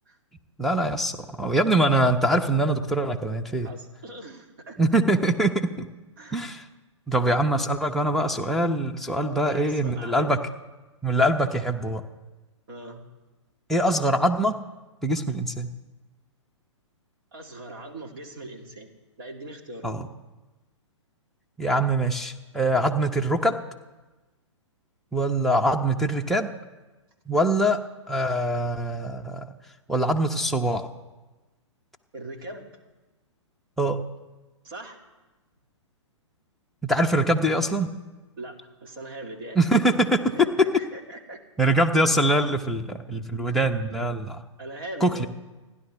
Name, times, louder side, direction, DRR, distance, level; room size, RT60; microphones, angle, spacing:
voice 1, 0.6-3.7 4.8-5.9 6.3-6.6 7.1-10.4 11.0-12.0 13.7-14.5 15.0-15.7 19.8-20.1 21.6-23.6 25.1-26.5 27.3-27.8 28.1-29.4 29.9-30.9 33.8-34.0 36.8-37.9 39.5-40.5 41.6-44.4 45.0-45.3, right 1 dB, ahead, 1 dB, 0.9 m, -23 dB
voice 2, 3.6-4.8 6.2-6.5 9.2-10.3 12.7-13.0 17.3-18.9 19.2-19.9 32.1-32.7 34.6-35.0 38.4-39.6 40.3-41.4 43.5-43.6 44.6-45.3, right 1 dB, 45° right, 2 dB, 2.6 m, -40 dB
29.5 x 11.0 x 3.5 m, 1.2 s
figure-of-eight pair, 115°, 16 cm